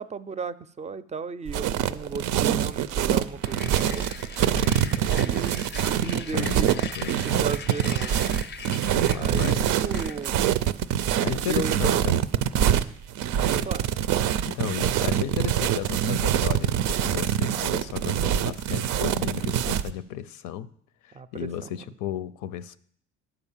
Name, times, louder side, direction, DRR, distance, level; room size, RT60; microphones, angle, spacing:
voice 1, 0.0-4.1 4.9-6.8 7.1-8.2 9.1-10.5 11.2-12.0 13.5-13.9 21.1-21.9, right 5 dB, 25° right, 15 dB, 0.4 m, -35 dB
sound 1, 1.5-19.9, right 10 dB, 85° right, 0.5 m, -24 dB
sound 2, 3.4-10.6, left 7 dB, 35° left, 0.4 m, -41 dB
voice 2, 4.5-5.0 6.0-6.6 7.0-7.5 8.9-9.7 11.2-12.2 12.6-12.8 13.4-13.7 14.5-20.7 21.0-22.8, left 10 dB, 85° left, 14 dB, 0.5 m, -34 dB
10.5 x 5.0 x 7.2 m, 0.63 s
cardioid pair, 90°, 30 cm